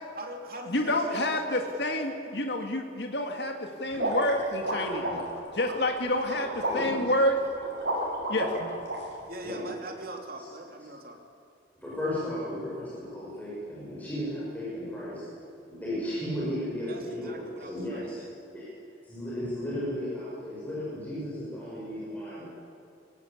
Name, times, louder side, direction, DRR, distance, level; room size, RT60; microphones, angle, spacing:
voice 1, 0.1-2.0 9.3-11.2 16.9-18.3, right 1 dB, 50° right, 2 dB, 3.1 m, -42 dB
voice 2, 0.7-5.0 5.6-7.4 8.3-8.7, left 1 dB, 65° left, 4 dB, 2.0 m, -28 dB
sound 1, 3.9-9.0, right 1 dB, 70° right, 6.4 m, -31 dB
voice 3, 4.8-5.2 6.7-6.9 9.4-9.6 11.8-15.2 15.7-18.2 18.5-18.6 19.0-22.5, left 1 dB, 10° left, -8 dB, 6.4 m, -35 dB
22.5 x 18.0 x 8.5 m, 2.7 s
head